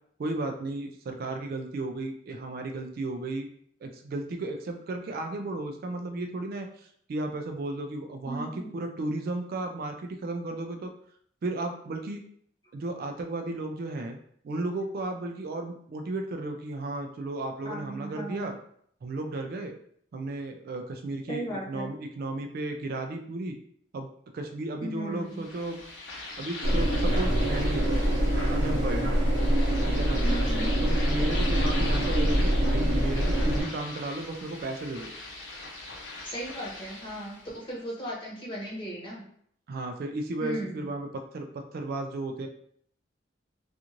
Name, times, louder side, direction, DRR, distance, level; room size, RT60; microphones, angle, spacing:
voice 1, 0.2-3.5 3.8-10.9 11.4-12.2 12.7-14.2 14.4-18.5 19.0-19.7 20.1-23.6 23.9-24.1 24.3-25.8 26.4-28.0 28.3-29.1 29.8-30.2 30.8-35.1 39.7-42.5, right 2 dB, 55° right, 4 dB, 0.3 m, -34 dB
voice 2, 8.2-8.7 17.6-18.5 21.3-21.9 24.8-25.4 30.2-30.8 36.2-39.2 40.4-40.8, right 1 dB, 25° left, -6 dB, 1.1 m, -36 dB
sound 1, 25.3-37.5, left 2 dB, 70° left, 0.7 m, -40 dB
sound 2, 26.6-33.6, equal, 85° right, 0.9 m, -25 dB
2.5 x 2.4 x 2.9 m, 0.65 s
head